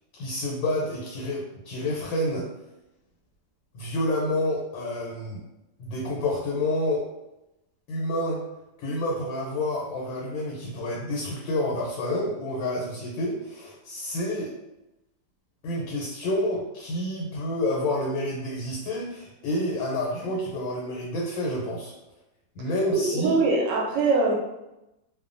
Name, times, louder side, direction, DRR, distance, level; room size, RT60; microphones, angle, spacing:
voice 1, 0.2-2.5 3.7-5.4 5.8-7.0 7.9-8.4 8.8-14.5 15.6-21.9 22.6-23.3, left 1 dB, 90° left, -2 dB, 1.4 m, -29 dB
voice 2, 22.9-24.3, right 3 dB, 75° right, -1 dB, 1.2 m, -22 dB
3.0 x 2.1 x 2.5 m, 0.93 s
omnidirectional pair, 2.0 m